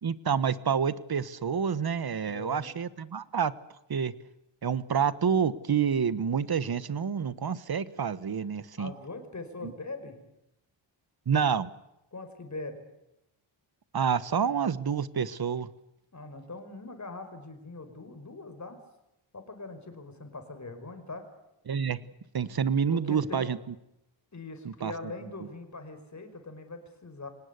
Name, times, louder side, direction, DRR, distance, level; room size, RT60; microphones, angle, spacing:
voice 1, 0.0-3.5 3.9-4.1 4.6-8.9 9.6-9.7 11.3-11.7 13.9-15.7 21.7-22.0 22.3-23.6 24.6-24.9, right 7 dB, 50° right, 16 dB, 1.3 m, -28 dB
voice 2, 2.3-2.8 8.8-10.2 12.1-12.8 16.1-18.8 19.3-21.3 22.9-23.5 24.3-27.3, left 3 dB, 35° left, 8 dB, 5.2 m, -42 dB
24.5 x 19.5 x 8.3 m, 0.86 s
wide cardioid pair, 100°, 48 cm